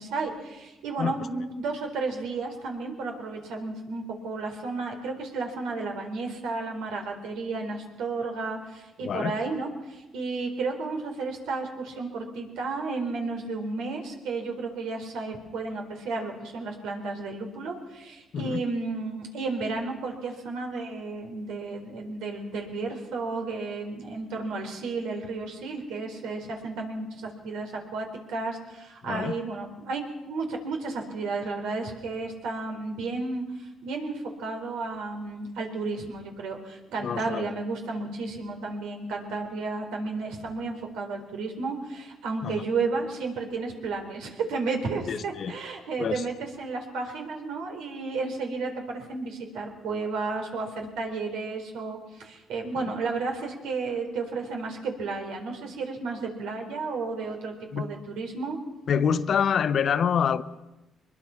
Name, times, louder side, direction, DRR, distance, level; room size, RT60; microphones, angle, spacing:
voice 1, 0.0-58.6, right 3 dB, 90° right, 4.2 m, -33 dB
voice 2, 9.0-9.3 18.3-18.6 29.0-29.3 37.0-37.5 42.4-42.6 45.1-45.5 46.0-46.2 57.7-57.9 58.9-60.4, left 7 dB, 60° left, 1.0 m, -26 dB
23.5 x 21.5 x 5.9 m
cardioid pair, 90°, 0 cm